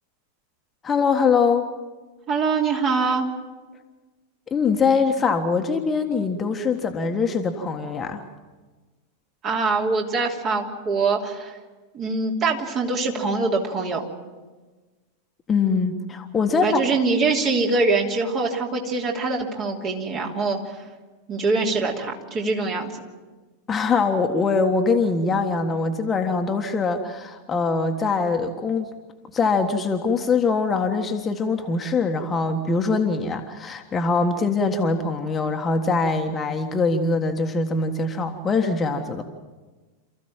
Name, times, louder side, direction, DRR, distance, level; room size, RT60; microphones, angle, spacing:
voice 1, 0.8-1.6 4.5-8.2 15.5-16.8 23.7-28.9 29.3-39.2, left 4 dB, 20° left, 4 dB, 1.5 m, -23 dB
voice 2, 2.3-3.3 9.4-11.6 11.9-14.0 16.6-20.8 21.3-22.9, right 3 dB, 30° right, 1 dB, 3.1 m, -23 dB
28.0 x 15.0 x 7.5 m, 1.3 s
figure-of-eight pair, 90°, 0 cm